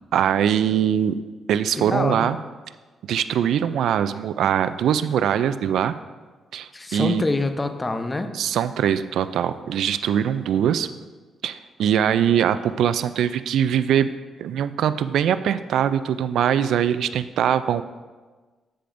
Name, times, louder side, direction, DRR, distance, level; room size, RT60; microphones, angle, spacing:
voice 1, 0.1-1.2 1.5-2.4 3.1-5.9 6.5-7.2 8.3-10.9 11.4-14.1 14.4-17.8, right 9 dB, 85° right, 13 dB, 0.3 m, -22 dB
voice 2, 1.8-2.3 6.7-8.3, left 2 dB, 20° left, 8 dB, 0.7 m, -25 dB
10.0 x 9.2 x 2.6 m, 1.3 s
cardioid pair, 95°, 0 cm